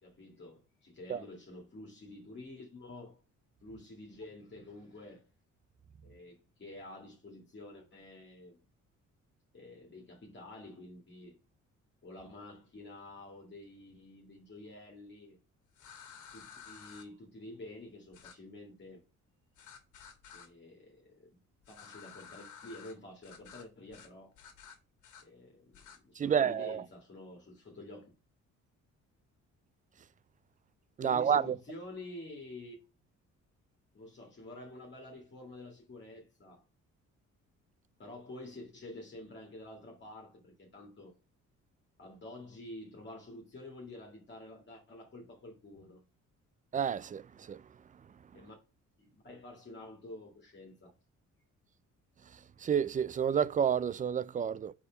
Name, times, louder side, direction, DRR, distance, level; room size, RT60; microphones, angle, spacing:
voice 1, 0.0-3.2 3.6-5.2 6.0-8.6 9.5-11.4 12.0-15.4 16.3-19.0 20.3-21.4 21.7-24.3 25.2-28.1 31.0-32.8 33.9-36.6 38.0-41.1 42.0-46.0 48.3-48.6 49.0-50.9, left 2 dB, 35° left, 2.1 m, -49 dB
sound 1, 15.7-17.0 18.1-18.3 19.6-20.5 21.6-22.9 23.2-23.6 23.9-24.1 24.3-25.2 25.7-26.0, left 7 dB, 75° left, 1.6 m, -52 dB
voice 2, 26.2-26.8 31.0-31.6 46.7-47.2 47.5-47.6 52.6-54.7, right 8 dB, 25° right, 0.4 m, -29 dB
4.9 x 4.2 x 5.1 m
cardioid pair, 90°, 30 cm